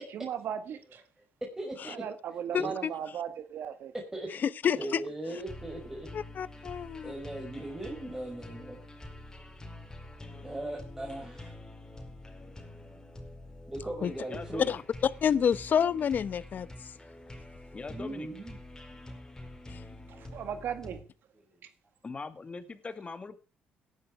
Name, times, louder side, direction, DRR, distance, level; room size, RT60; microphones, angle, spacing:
voice 1, 0.1-1.0 1.9-3.9 20.2-21.0, right 8 dB, 70° right, 1.9 m, -37 dB
voice 2, 1.6-2.0 2.5-2.7 3.9-4.3 4.8-6.1 7.0-8.8 10.4-11.5 13.7-14.7 17.9-18.6 21.5-21.6, right 1 dB, 15° right, 5.9 m, -38 dB
voice 3, 2.5-2.9 4.4-5.0 6.1-7.1 14.0-14.1 14.7-14.8 15.2-16.7 19.7-19.8, left 8 dB, 50° left, 1.0 m, -28 dB
sound 1, 5.4-21.0, left 1 dB, 15° left, 4.8 m, -47 dB
voice 4, 14.3-14.8 17.7-18.3 22.0-23.4, left 4 dB, 30° left, 2.2 m, -41 dB
18.0 x 11.0 x 4.8 m
supercardioid pair, 80°, 4 cm